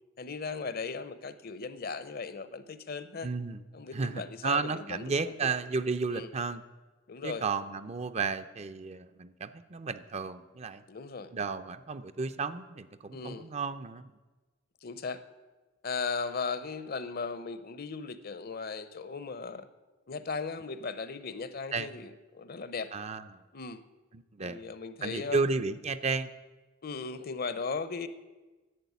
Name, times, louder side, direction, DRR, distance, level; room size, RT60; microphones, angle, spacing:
voice 1, 0.2-3.3 3.7-5.3 6.1-6.3 7.1-7.4 10.9-11.3 13.1-13.5 14.8-15.2 15.8-19.7 20.1-22.9 23.5-23.8 24.4-25.5 26.8-28.1, left 4 dB, 55° left, 13 dB, 0.7 m, -37 dB
voice 2, 3.2-3.6 3.9-6.6 7.2-10.8 11.3-14.1 21.7-21.9 22.9-23.4 24.4-24.6 25.0-26.3, right 4 dB, 35° right, 11 dB, 0.5 m, -33 dB
11.0 x 7.5 x 9.4 m, 1.2 s
head